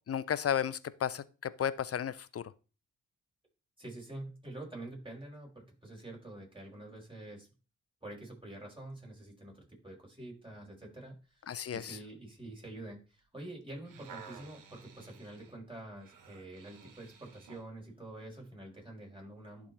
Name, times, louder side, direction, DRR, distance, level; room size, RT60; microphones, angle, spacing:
voice 1, 0.1-2.5 11.5-12.0, left 9 dB, 45° left, 0.7 m, -33 dB
voice 2, 3.8-7.5 8.0-19.7, right 1 dB, 15° right, 5.0 m, -47 dB
sound 1, 13.6-17.7 18.3-18.5, right 6 dB, 70° right, 1.3 m, -53 dB
11.0 x 3.8 x 4.1 m
hypercardioid pair, 40°, 33 cm